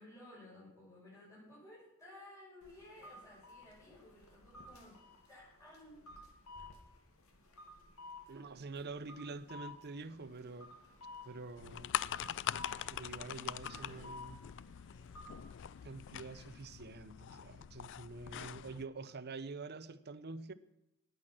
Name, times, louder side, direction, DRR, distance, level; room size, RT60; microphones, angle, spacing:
voice 1, 0.0-5.0 5.3-6.4 13.7-14.1, left 1 dB, 15° left, 7.1 m, -56 dB
sound 1, 2.6-16.5, left 2 dB, 80° left, 2.4 m, -55 dB
voice 2, 8.3-10.7 11.2-11.9 12.9-14.4 15.8-20.5, right 3 dB, 50° right, 0.7 m, -46 dB
sound 2, 11.6-18.9, left 10 dB, 60° left, 0.4 m, -43 dB
18.5 x 8.1 x 6.1 m
head